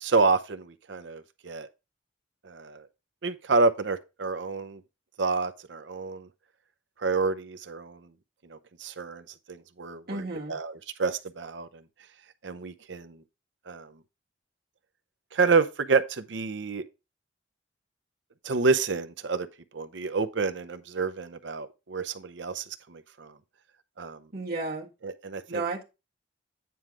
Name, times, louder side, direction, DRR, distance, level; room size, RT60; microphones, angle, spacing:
voice 1, 0.0-1.7 2.4-2.9 3.2-4.8 5.2-6.3 7.0-8.1 8.5-11.8 12.4-13.2 13.7-13.9 15.3-16.8 18.4-19.5 19.7-23.3 24.0-24.2 25.0-25.6, right 4 dB, 75° right, 0.7 m, -29 dB
voice 2, 10.1-10.6 24.3-24.9 25.5-25.8, right 3 dB, 55° right, 1.7 m, -32 dB
9.4 x 4.6 x 3.7 m
head